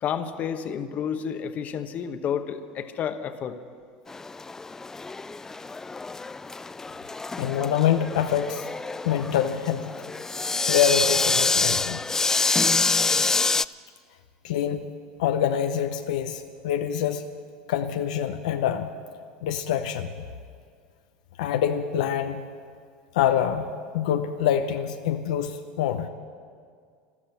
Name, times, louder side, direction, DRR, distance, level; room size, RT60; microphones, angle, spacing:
voice 1, 0.0-3.6, left 8 dB, 45° left, 9 dB, 1.0 m, -30 dB
sound 1, 4.1-13.7, left 3 dB, 15° left, 0.3 m, -26 dB
voice 2, 7.4-8.6 9.0-9.9 10.6-12.0 14.4-14.9 15.2-17.2 17.7-18.9 19.4-20.1 21.4-22.4 23.1-23.7 23.9-26.1, left 9 dB, 80° left, 7 dB, 0.7 m, -25 dB
13.5 x 13.0 x 7.7 m, 2.1 s
hypercardioid pair, 90°, 4 cm